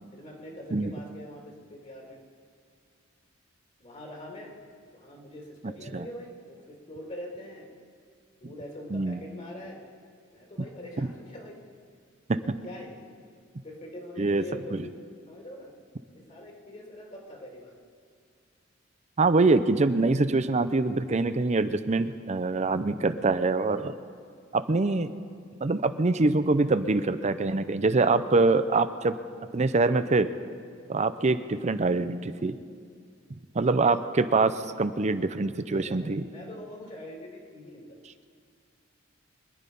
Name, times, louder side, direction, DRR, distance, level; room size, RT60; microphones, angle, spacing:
voice 1, 0.1-2.2 3.8-4.5 4.9-7.7 8.4-9.8 10.3-11.6 12.4-13.0 13.6-15.0 15.3-15.7 16.1-17.8 35.6-38.0, left 1 dB, 35° left, 0 dB, 2.6 m, -43 dB
voice 2, 8.9-9.2 12.3-12.4 14.2-14.4 14.7-14.8 19.2-23.9 24.5-25.1 25.6-29.2 29.5-30.3 30.9-32.5 33.5-36.2, right 3 dB, 35° right, 12 dB, 0.6 m, -24 dB
24.5 x 10.5 x 5.4 m, 2.1 s
head